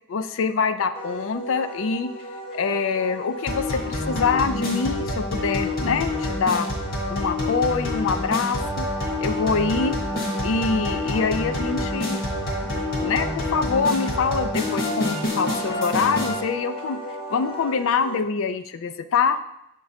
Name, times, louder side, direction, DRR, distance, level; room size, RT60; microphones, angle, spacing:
voice 1, 0.1-2.1 2.5-6.7 7.1-8.9 9.2-10.0 10.4-12.2 12.6-17.0 17.3-19.4, left 5 dB, 70° left, 11 dB, 0.4 m, -25 dB
Wind instrument woodwind instrument, 0.9-18.2, right 1 dB, 25° left, 0.7 m, -36 dB
sound 1, 3.5-16.4, left 2 dB, 45° left, 1.5 m, -28 dB
Brass instrument, 8.6-17.6, right 2 dB, 5° right, 0.4 m, -37 dB
6.9 x 3.7 x 4.2 m, 0.83 s
head